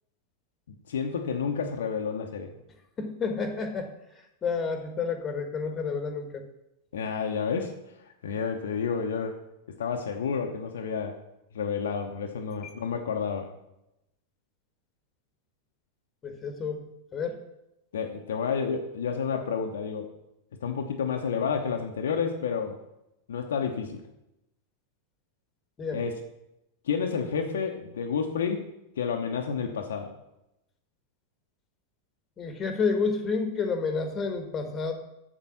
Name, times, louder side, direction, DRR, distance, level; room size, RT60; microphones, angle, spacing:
voice 1, 0.9-2.5 6.9-7.7 8.2-9.4 9.8-11.2 11.5-13.5 17.9-20.1 20.6-22.8 23.3-24.0 25.9-26.1 26.9-28.7 29.0-30.1, left 6 dB, 65° left, 3 dB, 0.9 m, -30 dB
voice 2, 3.0-3.9 4.4-6.4 12.6-12.7 16.2-16.8 17.1-17.4 25.8-26.1 32.4-34.9, left 5 dB, 25° left, 7 dB, 1.4 m, -30 dB
7.3 x 7.1 x 5.7 m, 0.86 s
figure-of-eight pair, 90°, 0 cm